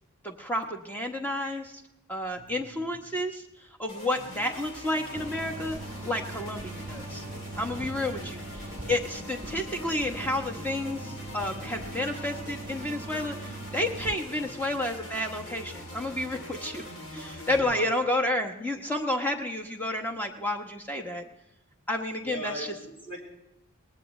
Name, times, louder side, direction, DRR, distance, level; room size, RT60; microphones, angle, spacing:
voice 1, 0.2-1.8 2.1-3.4 3.8-5.8 6.0-7.2 7.6-16.8 17.1-21.2 21.9-22.7, left 1 dB, 10° left, 3 dB, 1.1 m, -31 dB
voice 2, 2.3-3.0 7.7-8.3 14.3-14.5 17.6-17.9 22.2-23.2, equal, 25° left, -1 dB, 3.8 m, -41 dB
sound 1, 3.9-17.6, left 1 dB, 65° left, 3.1 m, -43 dB
sound 2, 5.1-14.1, right 2 dB, 15° right, 0.6 m, -41 dB
22.0 x 19.0 x 3.2 m, 0.92 s
head